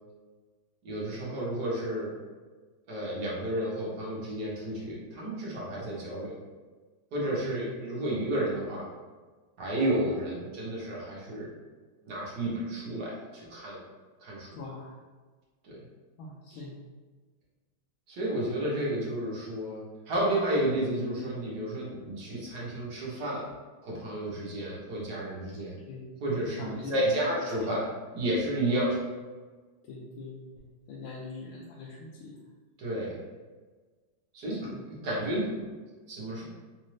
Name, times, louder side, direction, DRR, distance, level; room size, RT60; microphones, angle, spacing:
voice 1, 0.8-2.1 2.9-6.3 7.1-8.8 9.6-11.5 12.0-13.8 14.2-14.5 15.6-15.8 18.1-23.4 23.8-25.7 26.2-27.8 28.1-29.0 32.8-33.1 34.3-34.6 35.0-35.6 36.1-36.4, right 1 dB, 55° right, -5 dB, 1.5 m, -31 dB
voice 2, 14.6-15.0 16.2-16.8 25.8-26.0 26.6-27.4 27.6-27.7 29.8-32.4 34.6-34.8, left 3 dB, 80° left, -5 dB, 1.4 m, -43 dB
4.1 x 2.6 x 3.1 m, 1.4 s
omnidirectional pair, 2.3 m